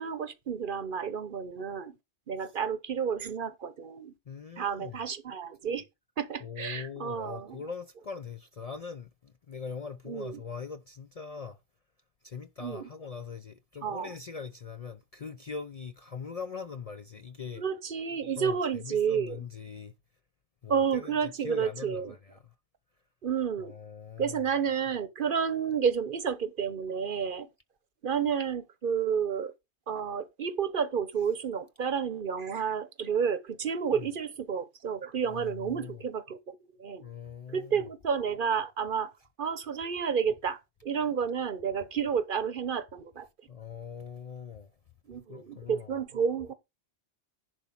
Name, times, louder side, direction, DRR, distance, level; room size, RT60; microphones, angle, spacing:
voice 1, 0.0-1.9 2.3-4.1 4.6-5.8 6.2-7.6 10.0-10.4 12.6-12.9 13.8-14.1 17.6-19.4 20.7-22.1 23.2-23.7 24.2-27.5 28.0-29.5 29.9-36.5 36.8-37.0 37.5-39.1 39.4-43.3 45.1-46.5, right 7 dB, 55° right, 0.9 m, -31 dB
voice 2, 4.3-5.0 6.4-11.6 12.2-17.6 18.4-19.9 20.6-22.5 23.6-24.4 33.9-34.0 35.3-36.0 37.0-37.9 43.5-44.7 45.3-46.0, left 6 dB, 45° left, 0.5 m, -42 dB
11.0 x 4.1 x 5.8 m
omnidirectional pair, 1.1 m